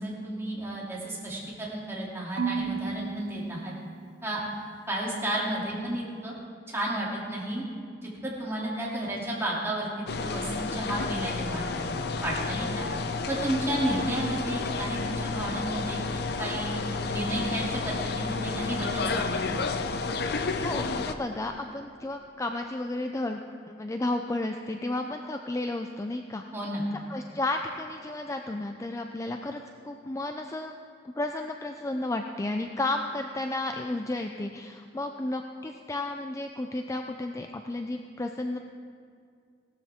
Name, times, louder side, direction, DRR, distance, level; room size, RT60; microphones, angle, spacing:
voice 1, 0.0-3.7 4.2-4.4 4.9-6.3 6.7-7.6 8.0-11.9 12.2-12.9 13.3-19.6 26.5-26.8, right 1 dB, 15° right, -5 dB, 2.9 m, -32 dB
Marimba xylophone / Wood, 2.4-4.6, right 6 dB, 65° right, 0.6 m, -35 dB
sound 1, 10.1-21.2, left 4 dB, 60° left, 0.6 m, -31 dB
voice 2, 13.7-14.0 20.6-23.4 23.8-26.4 26.9-30.7 31.2-38.6, left 2 dB, 15° left, 4 dB, 0.4 m, -32 dB
17.0 x 13.0 x 3.6 m, 2.3 s
head